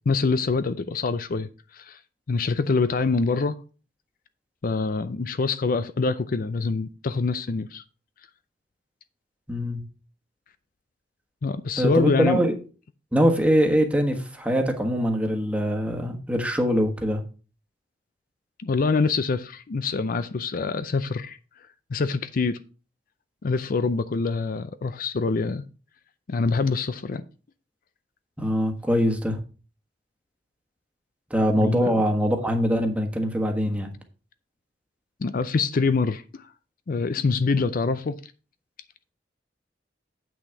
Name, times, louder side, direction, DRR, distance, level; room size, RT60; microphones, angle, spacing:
voice 1, 0.1-2.0 2.3-3.5 4.6-7.8 11.4-12.4 18.6-21.4 21.9-22.6 23.4-25.6 26.3-27.2 31.6-31.9 35.2-36.5 36.9-38.2, left 4 dB, 50° left, 0.5 m, -25 dB
voice 2, 9.5-9.8 11.8-12.5 13.1-17.2 28.4-29.4 31.3-33.9, equal, 10° right, 1.4 m, -23 dB
8.3 x 6.2 x 4.5 m
head